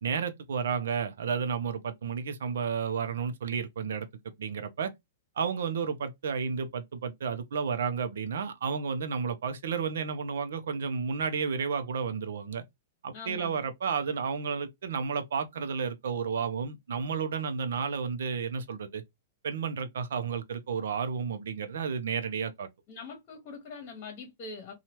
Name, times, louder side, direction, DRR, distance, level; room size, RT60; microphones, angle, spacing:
voice 1, 0.0-4.1 4.4-4.9 5.4-12.6 13.0-19.0 19.4-22.7, right 6 dB, 85° right, 0.6 m, -32 dB
voice 2, 13.1-13.7 22.9-24.7, left 4 dB, 35° left, 1.0 m, -43 dB
2.8 x 2.3 x 3.0 m
hypercardioid pair, 155°, 0 cm